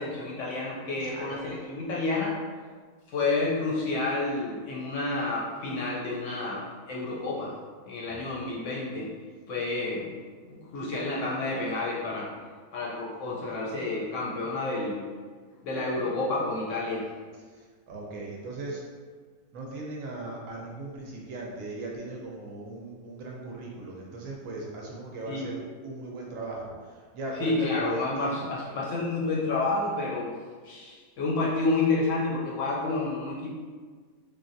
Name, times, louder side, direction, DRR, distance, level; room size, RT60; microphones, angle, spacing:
voice 1, 0.0-2.4 3.1-7.5 7.9-9.1 9.5-10.1 10.5-12.3 12.7-15.0 15.6-17.0 25.3-25.5 27.4-30.3 30.6-33.5, left 3 dB, 65° left, -5 dB, 0.9 m, -29 dB
voice 2, 1.0-1.4 8.1-8.5 17.5-17.6 17.9-18.8 19.5-28.3, right 2 dB, 70° right, -2 dB, 0.9 m, -38 dB
3.3 x 2.4 x 2.5 m, 1.5 s
omnidirectional pair, 1.6 m